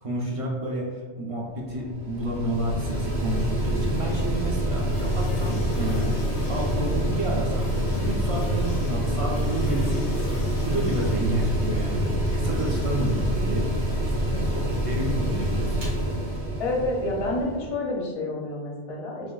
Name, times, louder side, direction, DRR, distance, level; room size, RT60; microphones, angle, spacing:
voice 1, 0.0-10.3 10.6-13.7 14.0-14.1 14.5-15.8, right 1 dB, 50° right, -2 dB, 0.4 m, -30 dB
Mechanical fan, 1.4-17.7, equal, 85° right, 1.6 m, -26 dB
sound 1, 4.8-14.0, left 2 dB, 70° left, 0.9 m, -42 dB
voice 2, 16.6-19.3, left 2 dB, 40° left, -1 dB, 0.5 m, -29 dB
5.8 x 2.5 x 2.3 m, 1.5 s
omnidirectional pair, 1.2 m